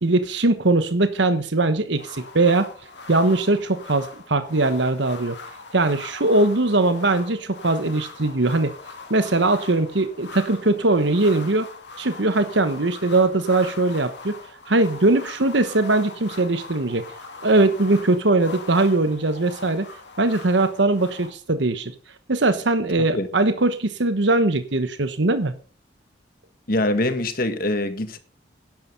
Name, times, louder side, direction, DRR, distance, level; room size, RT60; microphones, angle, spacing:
voice 1, 0.0-2.7 3.1-5.4 5.7-8.7 9.1-11.7 12.0-14.4 14.7-17.0 17.4-19.9 20.2-21.9 22.3-25.5, right 2 dB, 75° right, 1.1 m, -20 dB
sound 1, 2.0-21.3, left 4 dB, 70° left, 2.6 m, -41 dB
voice 2, 26.7-28.2, left 1 dB, 50° left, 1.7 m, -24 dB
12.0 x 10.5 x 5.3 m
head